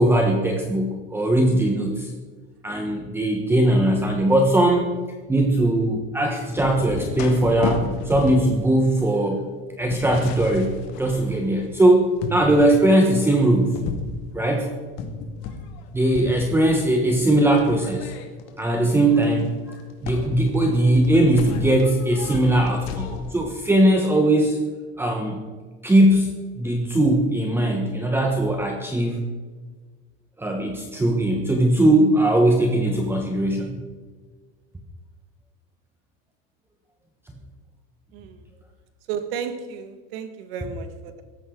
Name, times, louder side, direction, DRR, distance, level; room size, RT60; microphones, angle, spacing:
voice 1, 0.0-2.1 2.6-4.9 5.3-9.4 9.8-13.8 14.3-14.7 15.9-18.1 18.6-19.5 20.0-24.6 25.0-25.4 25.8-29.2 30.4-33.8, right 1 dB, 10° right, 2 dB, 1.3 m, -20 dB
sound 1, 6.5-11.8 12.2-12.8 13.2-15.9 16.1-16.9 17.5-23.4, left 5 dB, 65° left, 2.3 m, -34 dB
voice 2, 38.1-38.4 39.1-41.2, right 7 dB, 80° right, 8 dB, 1.9 m, -33 dB
17.5 x 13.5 x 3.9 m, 1.5 s
supercardioid pair, 150°, 29 cm